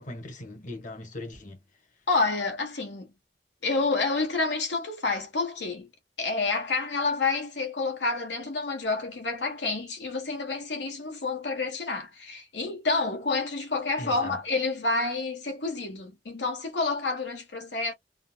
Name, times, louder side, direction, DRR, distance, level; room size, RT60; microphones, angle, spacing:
voice 1, 0.0-1.6 14.0-14.4, left 1 dB, 45° left, 1.3 m, -39 dB
voice 2, 2.1-3.1 3.6-5.9 6.2-17.9, left 3 dB, 85° left, 1.2 m, -29 dB
3.9 x 2.1 x 2.3 m
head